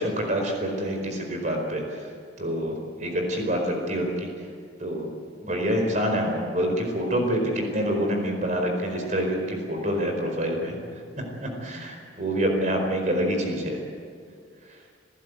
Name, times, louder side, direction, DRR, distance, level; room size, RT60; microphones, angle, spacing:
voice 1, 0.0-1.8 2.4-4.3 4.8-5.1 5.4-10.8 11.2-13.8, equal, 40° right, 3 dB, 4.7 m, -26 dB
28.5 x 15.0 x 8.1 m, 2.2 s
head